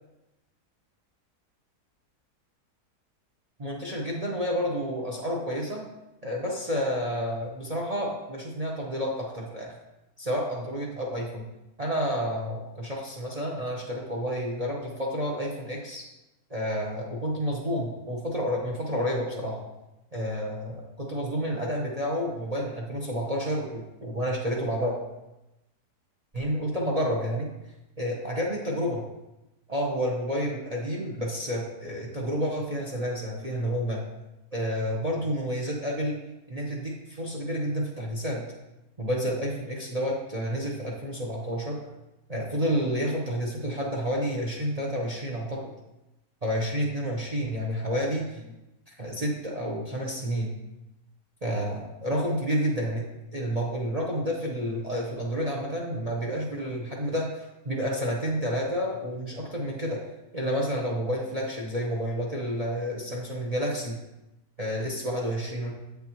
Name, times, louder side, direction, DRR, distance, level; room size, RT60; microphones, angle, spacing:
voice 1, 3.6-5.8 6.2-9.8 10.2-11.4 11.8-16.0 16.5-19.6 20.1-24.9 26.3-27.5 28.0-29.0 29.7-34.0 34.5-36.2 36.5-38.4 39.0-41.8 42.3-45.7 46.4-48.5 48.9-50.5 51.4-53.0 53.3-60.0 60.3-64.0 64.6-65.7, equal, 35° right, -1 dB, 0.7 m, -30 dB
7.7 x 6.9 x 3.0 m, 0.97 s
omnidirectional pair, 1.8 m